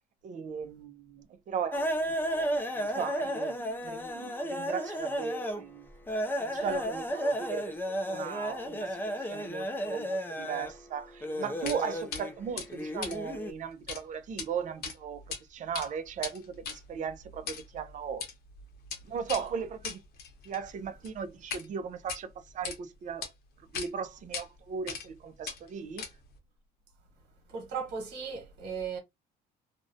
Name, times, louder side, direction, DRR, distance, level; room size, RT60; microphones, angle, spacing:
voice 1, 0.2-5.9 6.4-7.7 8.1-18.3 19.1-20.0 20.5-22.3 22.5-23.3 23.7-26.1, right 7 dB, 50° right, 0.5 m, -37 dB
sound 1, 1.7-5.6 6.1-10.7 11.2-13.5, equal, 10° left, 0.4 m, -33 dB
sound 2, 11.7-11.8 12.1-12.2 12.6-14.0 14.3-14.5 14.8-15.4 15.7-21.7 22.0-22.8 23.2-23.3 23.7-23.9 24.3-24.5 24.9-25.2 25.4-26.4, left 6 dB, 65° left, 0.8 m, -39 dB
voice 2, 27.5-29.0, right 6 dB, 75° right, 1.2 m, -36 dB
2.5 x 2.1 x 2.6 m
cardioid pair, 110°, 17 cm